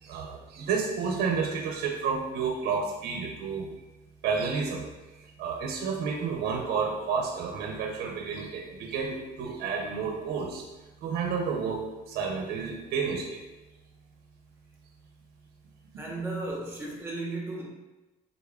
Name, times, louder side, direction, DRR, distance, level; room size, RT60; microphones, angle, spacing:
voice 1, 0.0-3.7 4.2-10.6 11.0-13.4, right 5 dB, 65° right, 1 dB, 0.5 m, -31 dB
voice 2, 16.0-17.6, right 2 dB, 15° right, -2 dB, 1.0 m, -34 dB
4.0 x 3.4 x 2.3 m, 1.1 s
cardioid pair, 110°, 17 cm